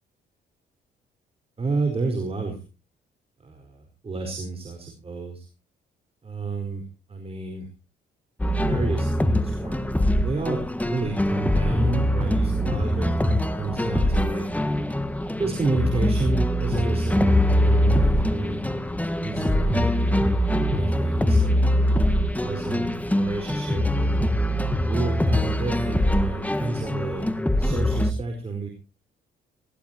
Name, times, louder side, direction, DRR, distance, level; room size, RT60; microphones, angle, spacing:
voice 1, 1.6-2.6 3.4-5.5 6.2-7.7 8.7-9.9 10.2-14.4 15.4-18.6 19.2-21.6 22.4-24.2 24.8-27.3 27.6-28.7, right 3 dB, 30° right, 4 dB, 4.7 m, -31 dB
sound 1, 8.4-28.1, left 1 dB, 5° left, 1.7 m, -23 dB
20.0 x 17.5 x 2.9 m, 0.32 s
cardioid pair, 90°, 20 cm